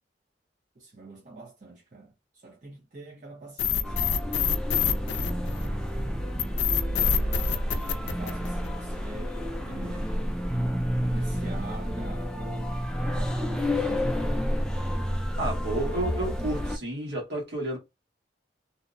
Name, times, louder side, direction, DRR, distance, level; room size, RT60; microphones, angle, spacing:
voice 1, 0.8-4.7 6.9-7.4 8.0-9.3 9.6-10.3 11.0-12.8 13.1-14.3 16.0-16.1, right 2 dB, 45° right, 0.6 m, -45 dB
sound 1, 3.6-5.9 6.4-8.8, left 8 dB, 85° left, 0.4 m, -26 dB
sound 2, 3.8-16.8, equal, 5° left, 0.3 m, -29 dB
voice 2, 15.4-17.8, right 1 dB, 65° right, 1.3 m, -31 dB
2.6 x 2.0 x 2.5 m
head